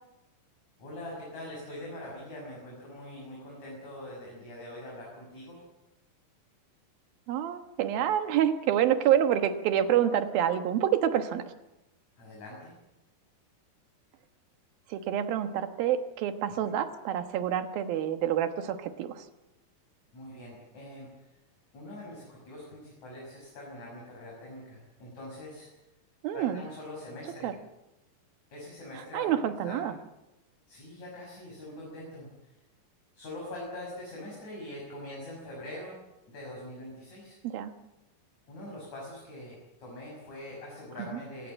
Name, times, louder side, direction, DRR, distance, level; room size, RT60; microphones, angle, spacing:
voice 1, 0.8-5.6 12.2-12.7 16.6-16.8 20.1-21.1 21.7-25.7 26.3-27.5 28.5-29.8 30.7-32.3 33.1-36.0 36.3-37.4 38.5-41.5, left 1 dB, 50° left, -3 dB, 7.6 m, -43 dB
voice 2, 7.3-11.4 14.9-19.3 26.2-26.6 27.4-27.5 28.9-29.9 37.4-37.7 41.0-41.2, right 10 dB, 90° right, 9 dB, 3.1 m, -27 dB
23.0 x 18.5 x 7.6 m, 0.95 s
omnidirectional pair, 4.1 m